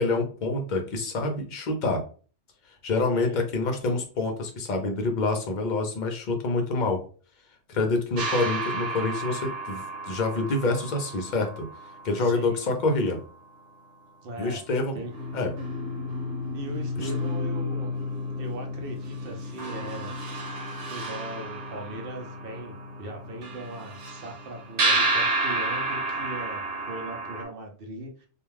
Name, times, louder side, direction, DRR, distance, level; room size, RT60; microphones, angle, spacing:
voice 1, 0.0-2.0 2.8-7.0 7.7-11.7 12.0-13.2 14.4-15.0 15.3-15.5 17.0-17.1, left 3 dB, 50° left, 3 dB, 0.6 m, -27 dB
sound 1, 8.2-13.0 14.5-14.6 15.0-27.4, right 1 dB, 75° right, 1.1 m, -31 dB
voice 2, 12.2-12.7 14.2-14.6 14.9-15.1 16.5-18.0 18.4-20.1 20.9-28.3, right 1 dB, 60° right, 2 dB, 0.7 m, -39 dB
2.4 x 2.2 x 3.2 m, 0.39 s
omnidirectional pair, 1.3 m